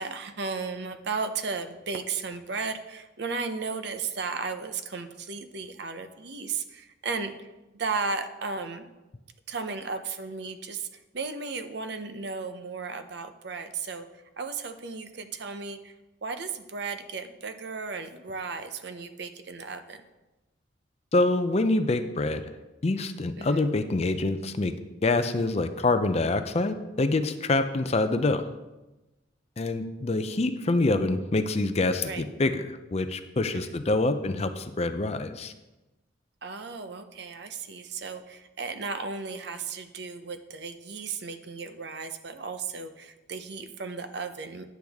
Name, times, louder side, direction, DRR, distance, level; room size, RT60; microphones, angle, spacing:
voice 1, 0.0-7.5 7.7-8.9 9.5-10.9 11.1-14.1 14.4-15.9 16.2-20.0 23.4-23.7 32.0-32.2 33.5-33.8 36.4-44.6, right 4 dB, 60° right, 8 dB, 0.7 m, -35 dB
voice 2, 21.1-22.4 22.8-24.7 25.0-28.4 29.6-35.5, left 2 dB, 35° left, 10 dB, 0.5 m, -26 dB
10.0 x 8.0 x 3.5 m, 1.1 s
head